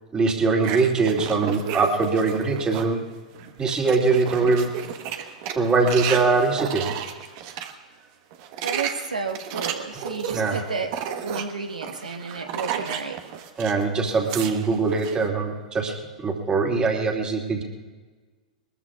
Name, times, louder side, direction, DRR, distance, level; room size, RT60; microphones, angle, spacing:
voice 1, 0.1-3.0 3.6-4.7 5.6-6.9 10.3-10.6 13.6-15.9 16.2-17.6, right 4 dB, 20° right, 1 dB, 2.5 m, -22 dB
sound 1, 0.6-2.9 3.4-7.7 8.3-13.8 14.1-15.2, right 9 dB, 45° right, 1.3 m, -33 dB
voice 2, 8.6-13.2, right 4 dB, 80° right, 5 dB, 1.5 m, -32 dB
22.5 x 20.5 x 2.4 m, 1.4 s
figure-of-eight pair, 100°, 4 cm